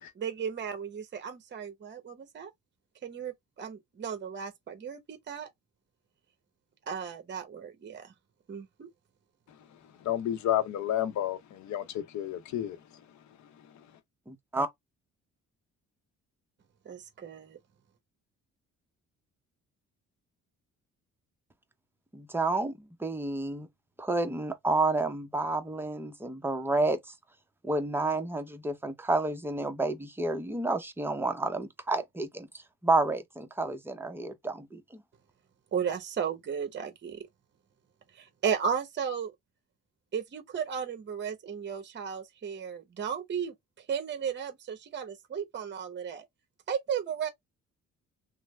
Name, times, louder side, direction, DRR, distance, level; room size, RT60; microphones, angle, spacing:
voice 1, 0.2-2.5 3.0-5.5 6.9-8.1 8.5-8.9 16.9-17.6 35.7-37.2 38.2-39.3 40.1-43.5 43.9-46.2 46.7-47.3, right 7 dB, 35° right, 0.8 m, -34 dB
voice 2, 10.0-13.0 13.7-13.9, left 11 dB, 70° left, 0.7 m, -31 dB
voice 3, 14.3-14.7 22.1-23.7 24.0-27.1 27.6-35.0, right 2 dB, 5° right, 0.6 m, -30 dB
3.2 x 2.0 x 3.1 m
cardioid pair, 90°, 30 cm